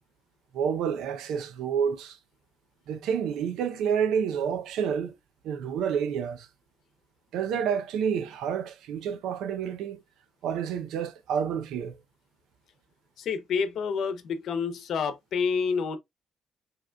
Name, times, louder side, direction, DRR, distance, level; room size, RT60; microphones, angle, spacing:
voice 1, 0.5-2.2 2.9-5.1 5.4-6.5 7.3-10.0 10.4-12.0, right 7 dB, 85° right, 0.6 m, -29 dB
voice 2, 13.2-16.0, left 5 dB, 70° left, 0.8 m, -28 dB
5.0 x 2.9 x 2.3 m
cardioid pair, 90°, 0 cm